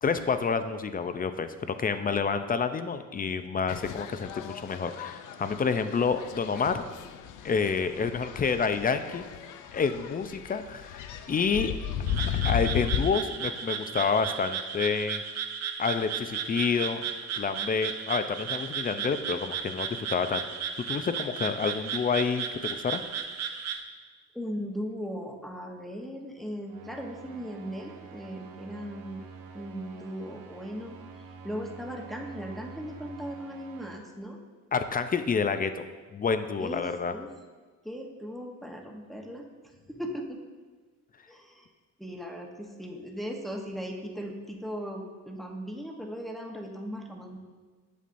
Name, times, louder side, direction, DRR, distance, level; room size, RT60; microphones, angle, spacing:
voice 1, 0.0-6.8 7.4-9.2 9.7-11.0 11.3-11.7 12.4-15.2 15.8-17.0 17.4-20.5 20.9-23.0 34.7-35.8 36.1-37.1, left 5 dB, 30° left, 10 dB, 0.5 m, -28 dB
sound 1, 3.7-13.2, left 9 dB, 80° left, 0.5 m, -35 dB
Frog, 12.1-23.8, right 7 dB, 60° right, 0.7 m, -35 dB
voice 2, 24.3-29.2 29.5-31.0 31.4-34.4 36.6-36.8 37.1-37.3 37.8-39.5 39.8-40.4 41.3-41.7 42.0-47.4, equal, ahead, 0 dB, 1.0 m, -38 dB
sound 2, 26.7-34.0, right 5 dB, 90° right, 0.9 m, -47 dB
8.3 x 7.2 x 2.6 m, 1.4 s
cardioid pair, 90°, 30 cm